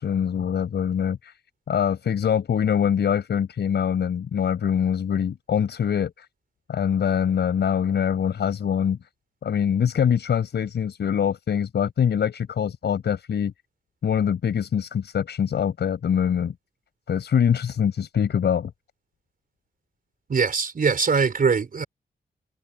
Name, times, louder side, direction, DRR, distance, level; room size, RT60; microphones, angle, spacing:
voice 1, 0.0-1.3 1.7-6.3 6.7-9.0 9.4-13.5 14.0-16.5 17.1-18.7, left 8 dB, 80° left, 6.1 m, -24 dB
voice 2, 20.3-21.8, right 5 dB, 55° right, 4.2 m, -22 dB
cardioid pair, 70°, 17 cm